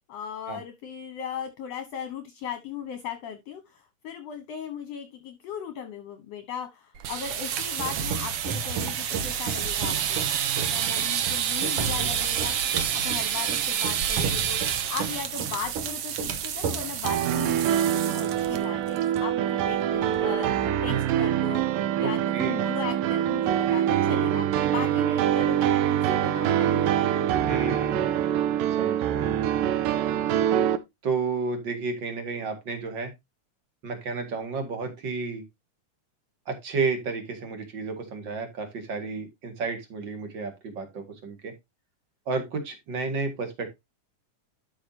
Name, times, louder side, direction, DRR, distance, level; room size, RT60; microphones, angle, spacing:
voice 1, 0.1-10.2 10.5-27.3, left 7 dB, 65° left, 8 dB, 1.9 m, -38 dB
sound 1, 6.9-18.6 18.9-19.2 19.5-19.6 20.0-20.4, right 8 dB, 65° right, 1.5 m, -28 dB
sound 2, 17.0-30.8, right 10 dB, 85° right, 2.5 m, -24 dB
voice 2, 22.0-22.6 27.5-28.3 28.8-29.9 31.0-33.1 33.8-35.4 36.5-41.5 42.3-43.7, right 4 dB, 40° right, 6 dB, 2.2 m, -32 dB
12.0 x 5.8 x 2.7 m, 0.20 s
omnidirectional pair, 3.8 m